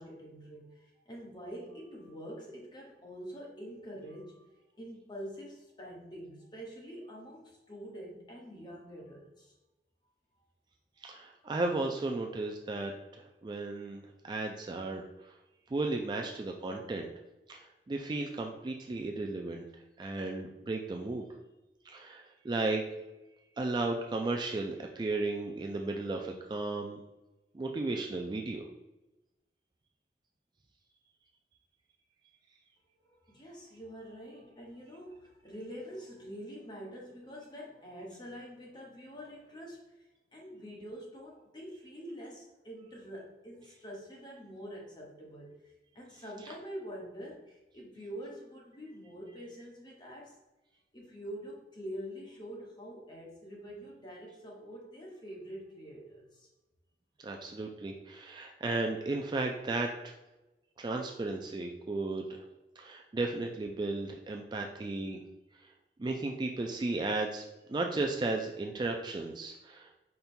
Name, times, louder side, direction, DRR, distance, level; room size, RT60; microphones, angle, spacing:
voice 1, 0.0-9.5 11.4-11.5 33.0-39.9 40.3-45.5 45.9-50.4 50.9-56.5, equal, 25° left, -2 dB, 1.1 m, -46 dB
voice 2, 11.0-15.3 15.7-17.1 17.5-19.6 20.0-21.3 21.9-22.9 23.6-27.0 27.5-28.7 57.2-60.2 60.8-62.5 62.8-65.2 65.6-65.7 66.0-70.0, right 2 dB, 25° right, 2 dB, 0.3 m, -34 dB
5.2 x 2.3 x 4.3 m, 1.0 s
head